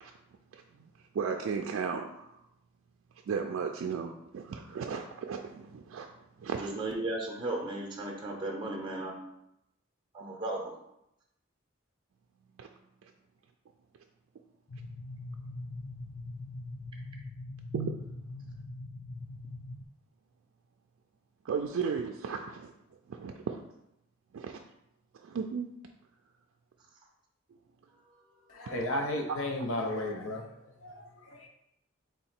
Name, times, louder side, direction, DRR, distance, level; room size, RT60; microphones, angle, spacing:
voice 1, 0.5-0.9 1.1-2.4 3.3-6.1 6.4-6.7 12.6-12.7 17.7-17.9 21.4-22.7 23.1-23.6 24.3-24.6 25.1-25.7, right 6 dB, 75° right, 3 dB, 0.3 m, -35 dB
voice 2, 6.6-9.1 10.1-10.7 28.1-28.2, right 2 dB, 25° right, -1 dB, 0.6 m, -35 dB
sound 1, 14.7-19.9, left 2 dB, 35° left, 0.3 m, -42 dB
voice 3, 28.5-31.5, left 1 dB, 85° left, 2 dB, 0.7 m, -34 dB
3.8 x 2.8 x 4.3 m, 0.82 s
head